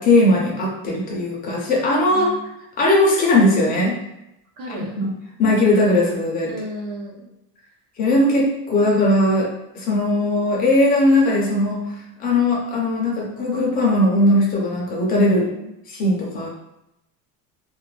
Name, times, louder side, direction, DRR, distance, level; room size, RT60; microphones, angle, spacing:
voice 1, 0.0-2.3 2.8-4.0 4.7-5.1 5.4-6.5 8.0-9.5 9.7-11.8 12.2-15.5 15.9-16.5, left 1 dB, 25° left, -3 dB, 0.4 m, -18 dB
voice 2, 2.1-2.5 4.6-5.0 6.5-7.3 15.5-15.7, equal, 65° right, -3 dB, 0.9 m, -34 dB
2.4 x 2.1 x 3.0 m, 0.88 s
cardioid pair, 175°, 37 cm